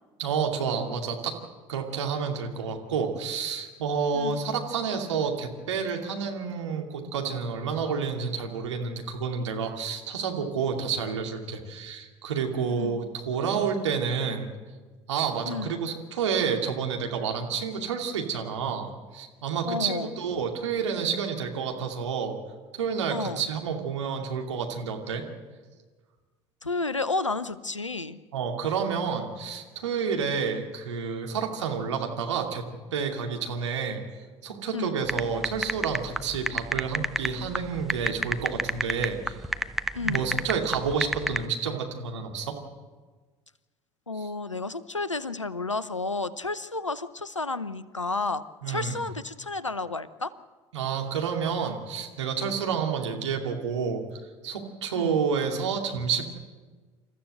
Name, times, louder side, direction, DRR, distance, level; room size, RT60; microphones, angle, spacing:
voice 1, 0.2-1.4 1.7-14.5 15.1-22.4 22.7-25.2 28.3-32.6 32.9-34.0 34.4-39.4 40.0-42.5 44.2-44.3 48.6-49.0 50.7-54.0 54.4-56.2, right 6 dB, 70° right, 2 dB, 2.6 m, -29 dB
voice 2, 12.7-13.0 15.5-15.8 19.7-20.1 23.1-23.4 26.6-28.2 34.7-34.9 39.9-40.3 44.1-50.3 54.9-55.2, left 3 dB, 90° left, 18 dB, 0.7 m, -31 dB
sound 1, 35.1-41.4, equal, ahead, 0.8 m, -28 dB
28.0 x 14.0 x 7.8 m, 1.4 s
figure-of-eight pair, 65°, 15 cm